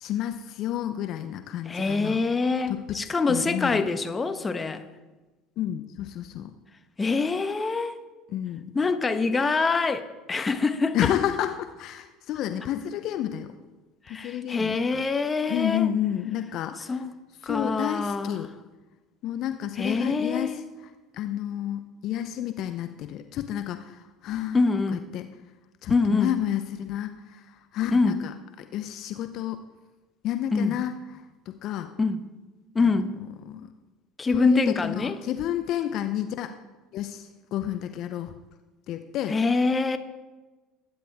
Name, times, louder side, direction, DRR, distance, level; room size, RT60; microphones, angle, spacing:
voice 1, 0.0-2.2 2.7-3.0 3.3-3.9 5.6-6.5 8.3-8.6 10.9-13.5 14.1-15.0 15.5-16.9 17.4-18.5 19.2-20.6 21.1-24.6 24.9-25.3 25.8-28.3 28.6-29.6 30.2-31.0 31.5-31.9 32.9-33.0 33.5-33.7 34.3-36.5 36.9-38.3 38.9-39.4, left 11 dB, 55° left, 8 dB, 0.8 m, -30 dB
voice 2, 1.6-4.8 7.0-8.0 8.7-11.1 14.1-15.9 16.8-17.1 17.4-18.4 19.8-20.6 24.5-25.1 25.9-26.3 27.9-28.2 30.5-30.8 32.0-32.2 32.7-33.1 34.2-35.2 39.3-40.0, left 4 dB, 25° left, 8 dB, 1.3 m, -25 dB
21.0 x 10.0 x 3.6 m, 1.2 s
hypercardioid pair, 70°, 0 cm